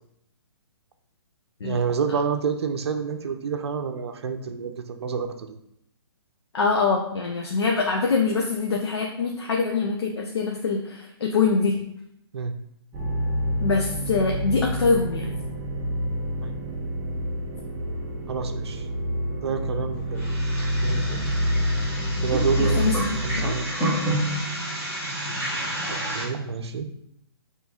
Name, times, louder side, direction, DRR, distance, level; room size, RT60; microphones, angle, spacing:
voice 1, 1.6-5.5 12.3-12.5 16.4-16.6 18.3-18.8 19.4-20.2 20.8-21.2 22.2-23.8 25.9-26.9, right 6 dB, 75° right, 6 dB, 0.5 m, -28 dB
voice 2, 6.5-11.8 13.6-15.4 22.6-23.6, left 4 dB, 75° left, 0 dB, 0.6 m, -24 dB
sound 1, 12.9-23.5, equal, 15° right, 0.4 m, -27 dB
sound 2, 20.1-26.2, right 1 dB, 15° left, 1.2 m, -30 dB
5.8 x 2.9 x 2.3 m, 0.76 s
hypercardioid pair, 160°, 14 cm